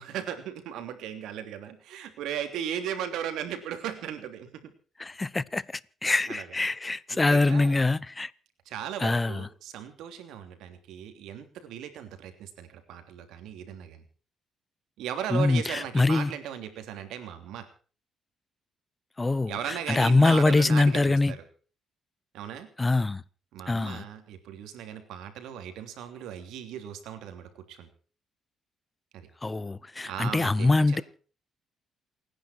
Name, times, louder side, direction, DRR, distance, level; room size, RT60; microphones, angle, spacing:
voice 1, 0.0-4.7 6.3-6.5 7.1-7.8 8.6-14.0 15.0-17.7 19.5-21.4 22.3-22.7 23.5-27.9 29.1-29.3 30.1-31.0, right 9 dB, 90° right, 3.2 m, -37 dB
voice 2, 5.0-5.6 6.0-8.3 9.0-9.5 15.3-16.3 19.2-21.3 22.8-23.2 23.7-24.0 29.4-31.0, left 3 dB, 20° left, 0.8 m, -24 dB
28.5 x 10.5 x 4.5 m
cardioid pair, 90°, 0 cm